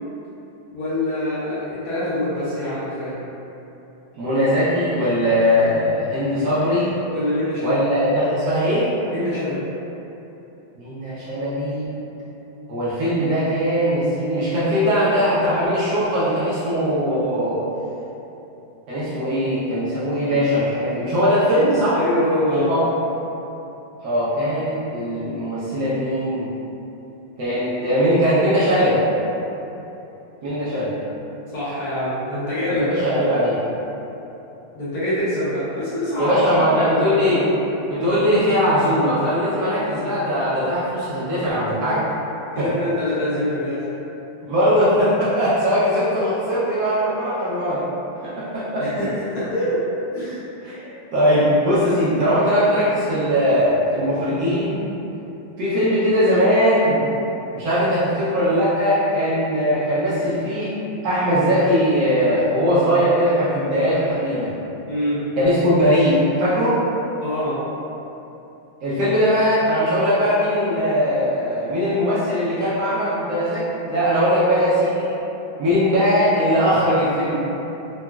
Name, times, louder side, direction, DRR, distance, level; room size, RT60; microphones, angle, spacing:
voice 1, 0.7-3.2 7.1-7.9 9.1-9.7 21.9-22.8 31.5-33.0 34.7-37.3 42.5-43.9 48.8-49.8 50.1-50.4 64.9-65.2 67.2-67.6, left 1 dB, 65° left, -11 dB, 1.2 m, -25 dB
voice 2, 4.2-6.9 7.6-8.9 10.8-12.1 12.7-17.6 18.9-22.0 22.5-22.8 24.0-26.5 27.4-29.0 30.4-30.9 32.7-33.6 36.2-37.5 37.9-42.0 42.6-42.7 44.4-47.9 48.2-49.0 50.6-54.8 55.6-57.0 57.5-60.7 61.0-64.5 65.4-66.8 68.8-75.1 75.6-77.4, equal, 70° right, -9 dB, 1.1 m, -20 dB
3.8 x 2.2 x 2.2 m, 3.0 s
omnidirectional pair, 2.1 m